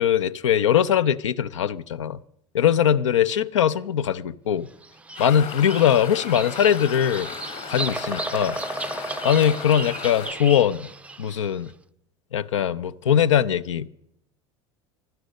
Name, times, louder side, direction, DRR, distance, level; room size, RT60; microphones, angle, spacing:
voice 1, 0.0-2.2 2.5-4.7 5.2-7.3 7.7-8.6 9.2-10.9 11.2-11.7 12.3-13.9, left 9 dB, 90° left, 0.5 m, -21 dB
Bird vocalization bird call bird song, 4.8-11.5, right 2 dB, 10° right, 0.4 m, -34 dB
sound 1, 5.2-10.3, left 7 dB, 50° left, 3.1 m, -36 dB
15.5 x 11.5 x 5.2 m
hypercardioid pair, 85°, 15 cm